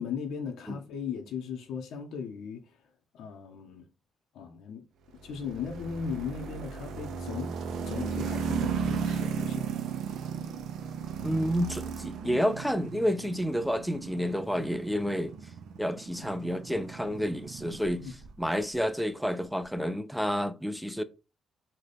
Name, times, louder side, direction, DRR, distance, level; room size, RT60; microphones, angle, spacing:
voice 1, 0.0-2.8 3.1-3.9 4.3-4.8 5.2-7.6 7.8-9.8 18.0-18.1, left 6 dB, 80° left, 0.6 m, -37 dB
sound 1, 5.2-18.4, right 6 dB, 75° right, 0.4 m, -36 dB
voice 2, 11.2-15.3 15.8-18.1 18.4-21.0, equal, ahead, 0.4 m, -30 dB
3.9 x 2.2 x 3.3 m
cardioid pair, 90°, 0 cm